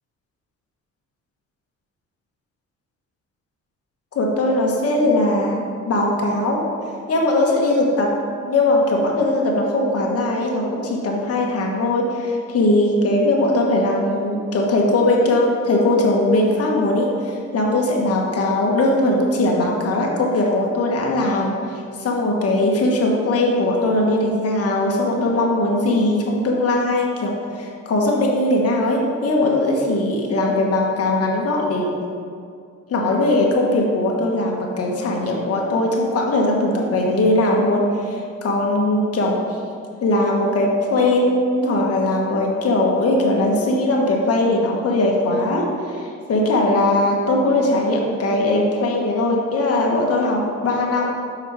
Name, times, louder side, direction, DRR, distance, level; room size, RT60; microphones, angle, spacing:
voice 1, 4.1-6.6 7.1-8.1 8.5-32.0 32.9-39.4 40.0-51.1, left 2 dB, 50° left, -1 dB, 1.3 m, -20 dB
5.8 x 5.2 x 4.7 m, 2.3 s
cardioid pair, 90°, 30 cm